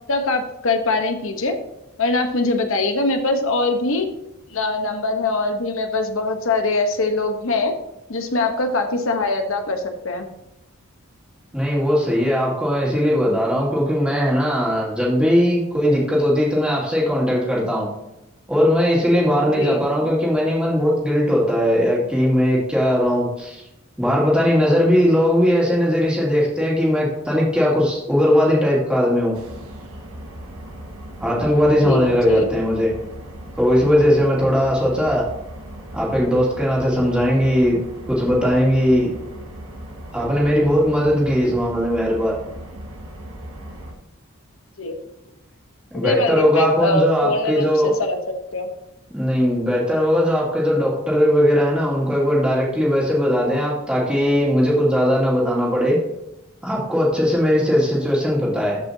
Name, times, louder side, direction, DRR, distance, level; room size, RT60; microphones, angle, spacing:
voice 1, 0.1-1.6 2.0-4.0 4.5-7.7 8.1-10.2 19.5-19.8 31.7-32.5 44.8-44.9 45.9-48.2 48.5-48.7, left 2 dB, 70° left, 5 dB, 1.1 m, -22 dB
voice 2, 11.5-17.9 18.5-23.6 24.0-29.4 31.2-32.9 33.6-35.3 35.9-37.8 38.1-39.1 40.1-42.4 45.9-47.9 49.1-56.0 56.6-58.8, equal, 5° right, -5 dB, 2.3 m, -19 dB
sound 1, 29.3-43.9, right 1 dB, 85° right, 1.5 m, -37 dB
13.0 x 5.5 x 2.8 m, 0.92 s
head